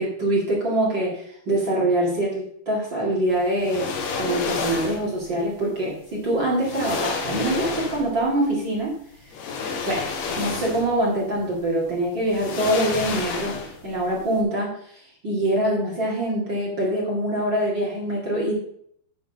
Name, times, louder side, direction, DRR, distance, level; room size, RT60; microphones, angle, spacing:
voice 1, 0.0-8.9 9.8-10.1 10.4-18.5, right 1 dB, 35° right, -5 dB, 2.2 m, -24 dB
sound 1, 3.6-5.1 6.2-6.3 6.6-8.2 9.3-11.0 11.4-11.5 12.3-13.9 14.2-14.3, left 5 dB, 80° left, 3.3 m, -30 dB
9.5 x 4.0 x 6.5 m, 0.66 s
omnidirectional pair, 4.6 m